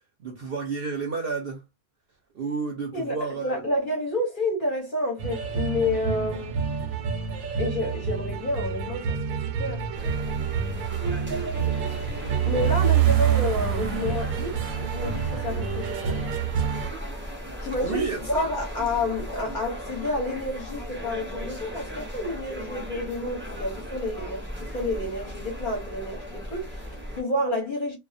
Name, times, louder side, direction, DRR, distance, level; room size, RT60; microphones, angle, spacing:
voice 1, 0.2-1.6 2.3-3.6 17.8-18.5, right 4 dB, 60° right, 0.6 m, -31 dB
voice 2, 2.9-6.6 7.6-9.8 10.5-10.8 12.4-16.4 17.6-28.0, left 1 dB, 45° left, 0.7 m, -30 dB
sound 1, 5.2-16.9, right 8 dB, 85° right, 1.0 m, -27 dB
sound 2, 9.9-27.2, equal, 15° right, 0.5 m, -37 dB
2.2 x 2.1 x 2.5 m
omnidirectional pair, 1.4 m